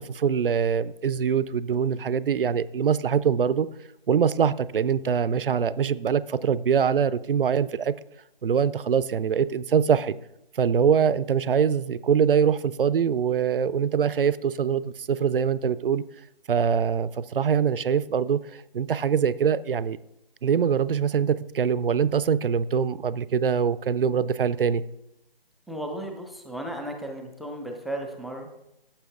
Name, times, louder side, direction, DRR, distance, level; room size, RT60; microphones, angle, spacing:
voice 1, 0.0-3.7 4.1-7.9 8.4-10.2 10.5-16.0 16.5-20.0 20.4-24.8, right 7 dB, 65° right, 0.4 m, -23 dB
voice 2, 25.7-28.6, right 1 dB, ahead, 0.3 m, -35 dB
14.5 x 6.8 x 2.4 m
figure-of-eight pair, 170°, 30 cm